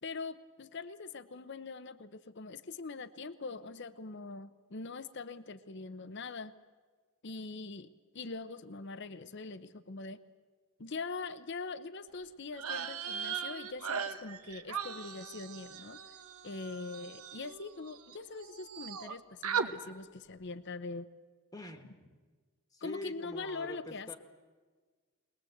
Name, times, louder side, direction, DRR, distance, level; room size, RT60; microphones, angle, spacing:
voice 1, 0.0-6.5 7.2-10.2 10.8-16.0 16.4-21.1 22.8-24.2, left 3 dB, 50° left, 13 dB, 0.7 m, -43 dB
sound 1, 12.5-18.2 18.4-19.1 19.4-19.7, right 6 dB, 90° right, 1.3 m, -38 dB
voice 2, 21.5-22.2 22.7-24.2, left 1 dB, 15° left, 6 dB, 1.3 m, -45 dB
22.0 x 21.0 x 7.9 m, 1.5 s
head